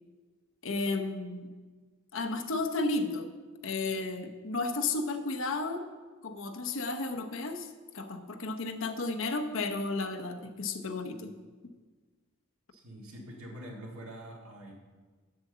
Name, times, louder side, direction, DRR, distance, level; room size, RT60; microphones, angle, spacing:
voice 1, 0.6-1.5 2.1-3.3 3.6-5.9 6.2-11.3, left 3 dB, 65° left, 5 dB, 0.9 m, -33 dB
voice 2, 12.7-14.7, right 1 dB, 85° right, -1 dB, 2.0 m, -45 dB
7.7 x 7.3 x 6.8 m, 1.4 s
head